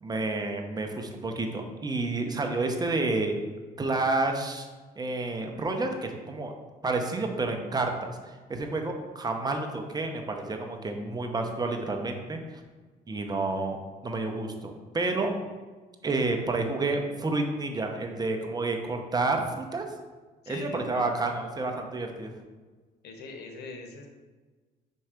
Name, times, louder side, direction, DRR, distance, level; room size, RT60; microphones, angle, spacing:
voice 1, 0.0-3.3 3.8-4.7 5.0-6.5 6.8-12.4 13.1-13.8 14.0-15.4 16.0-19.9 20.5-22.3, right 3 dB, 25° right, 4 dB, 0.8 m, -30 dB
voice 2, 20.4-21.1 23.0-24.1, left 3 dB, 75° left, 3 dB, 1.2 m, -42 dB
5.4 x 4.6 x 5.0 m, 1.3 s
cardioid pair, 110°, 17 cm